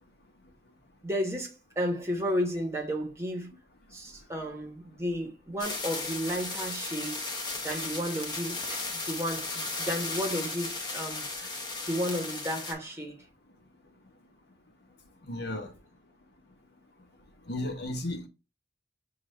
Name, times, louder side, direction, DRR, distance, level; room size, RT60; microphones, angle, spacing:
voice 1, 1.0-3.5 3.9-7.2 7.6-11.5 11.9-13.2, equal, 15° right, 1.0 m, -33 dB
sound 1, 5.6-12.7, left 3 dB, 25° left, 0.8 m, -35 dB
voice 2, 15.2-15.7 17.5-18.3, left 1 dB, 60° left, 1.1 m, -34 dB
6.8 x 2.4 x 3.3 m
head